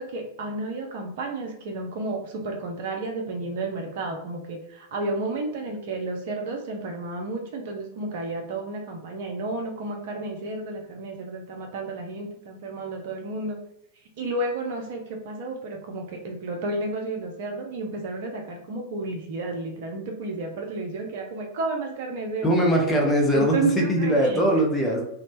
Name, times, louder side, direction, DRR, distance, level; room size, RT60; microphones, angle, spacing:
voice 1, 0.0-13.6 14.2-22.5 23.3-24.5, right 2 dB, 55° right, 2 dB, 0.5 m, -31 dB
voice 2, 22.4-25.0, equal, 15° left, 0 dB, 0.7 m, -21 dB
2.6 x 2.1 x 2.9 m, 0.76 s
figure-of-eight pair, 90°, 0 cm